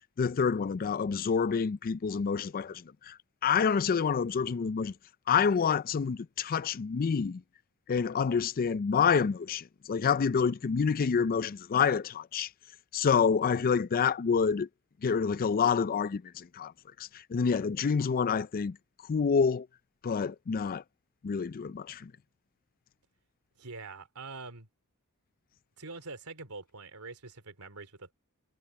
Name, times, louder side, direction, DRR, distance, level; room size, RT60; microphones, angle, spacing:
voice 1, 0.2-4.9 5.3-7.4 7.9-12.5 12.9-14.7 15.0-16.7 17.0-18.8 19.0-19.7 20.0-20.8 21.2-22.1, left 6 dB, 40° left, 0.4 m, -28 dB
voice 2, 23.6-24.7 25.8-28.1, right 3 dB, 85° right, 3.0 m, -44 dB
head